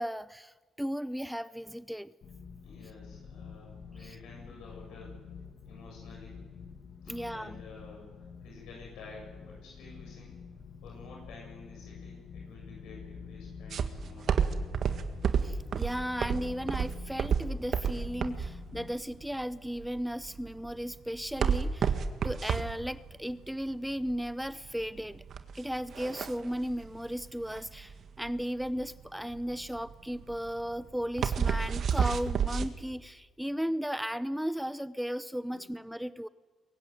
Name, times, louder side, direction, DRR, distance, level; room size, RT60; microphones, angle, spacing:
voice 1, 0.0-2.1 4.0-4.2 7.1-7.6 15.4-22.0 22.2-25.2 25.5-36.3, equal, ahead, 15 dB, 0.7 m, -35 dB
sound 1, 2.2-18.9, left 6 dB, 60° left, 2.3 m, -48 dB
voice 2, 2.6-5.2 5.6-6.4 7.0-8.1 8.4-10.4 10.8-14.6 35.5-35.6, left 3 dB, 85° left, -1 dB, 7.9 m, -51 dB
sound 2, 13.7-32.7, right 7 dB, 60° right, 1.7 m, -31 dB
23.0 x 22.0 x 9.5 m, 1.4 s
cardioid pair, 90°, 0 cm